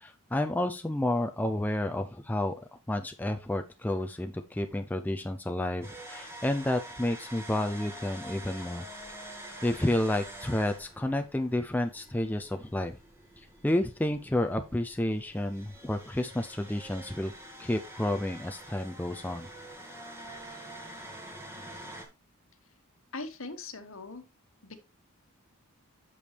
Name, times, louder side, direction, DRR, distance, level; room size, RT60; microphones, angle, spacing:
voice 1, 0.0-8.8 9.6-13.0 13.6-17.3 17.6-19.5, left 1 dB, 10° left, 6 dB, 0.4 m, -30 dB
sound 1, 5.8-22.1, right 1 dB, 10° right, 1.7 m, -46 dB
voice 2, 23.1-24.3 24.6-24.8, left 3 dB, 60° left, 8 dB, 1.2 m, -40 dB
8.1 x 6.9 x 3.3 m, 0.26 s
head